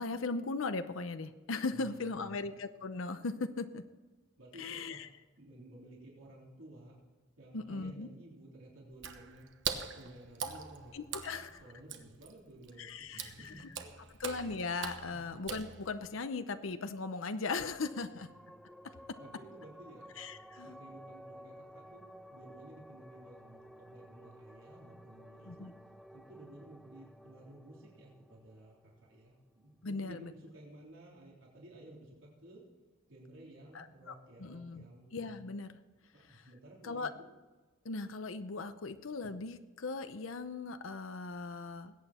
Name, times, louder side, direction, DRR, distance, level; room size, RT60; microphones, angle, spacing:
voice 1, 0.0-3.8 4.6-5.1 7.5-8.1 10.9-11.5 12.8-13.7 14.2-18.3 20.2-20.8 25.5-25.7 29.8-30.3 33.7-34.1 34.4-34.8 35.1-35.8 36.3-36.4 36.8-37.1 37.8-41.9, left 3 dB, 85° left, 10 dB, 0.7 m, -38 dB
voice 2, 1.7-2.5 4.4-6.9 7.4-9.5 9.9-13.6 14.0-14.2 15.1-15.3 18.9-20.1 20.6-25.7 26.1-32.6 33.1-35.1 36.1-37.2, right 1 dB, 80° right, -3 dB, 3.7 m, -54 dB
Water / Splash splatter, 8.9-16.2, right 6 dB, 65° right, 1.2 m, -43 dB
sound 1, 17.4-30.3, equal, ahead, 0.4 m, -55 dB
20.5 x 8.9 x 4.3 m, 1.3 s
head